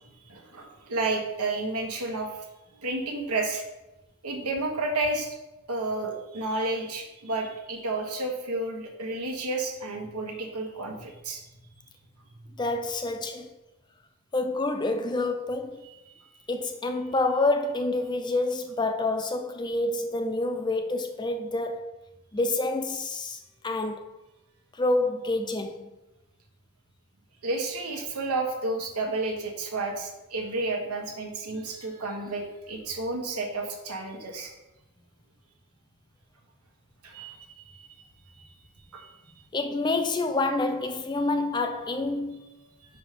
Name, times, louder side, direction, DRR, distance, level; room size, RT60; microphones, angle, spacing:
voice 1, 0.3-2.3 2.8-3.6 4.2-5.3 5.7-11.4 15.8-16.0 27.4-34.5 37.0-38.1 38.4-38.6 38.9-39.1, right 2 dB, 90° right, 1.4 m, -31 dB
voice 2, 12.6-13.5 14.3-15.8 16.5-21.8 22.3-23.4 23.6-24.0 24.8-25.9 39.5-42.4, left 2 dB, 20° left, 0.4 m, -27 dB
5.3 x 4.9 x 5.1 m
head